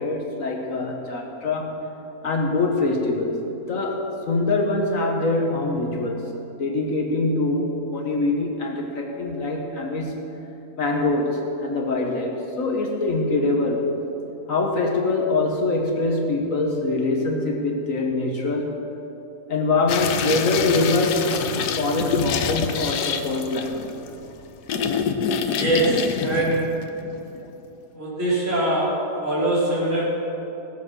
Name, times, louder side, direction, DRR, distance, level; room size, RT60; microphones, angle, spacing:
voice 1, 0.0-1.8 2.2-3.4 3.7-6.3 6.6-10.2 10.8-13.9 14.5-18.8 19.5-23.8, left 2 dB, 60° left, 1 dB, 1.6 m, -24 dB
sound 1, 19.9-27.5, left 7 dB, 90° left, 1.3 m, -27 dB
voice 2, 25.5-26.8 27.9-30.0, right 1 dB, 50° right, -8 dB, 4.4 m, -23 dB
17.0 x 7.9 x 6.1 m, 3.0 s
omnidirectional pair, 1.7 m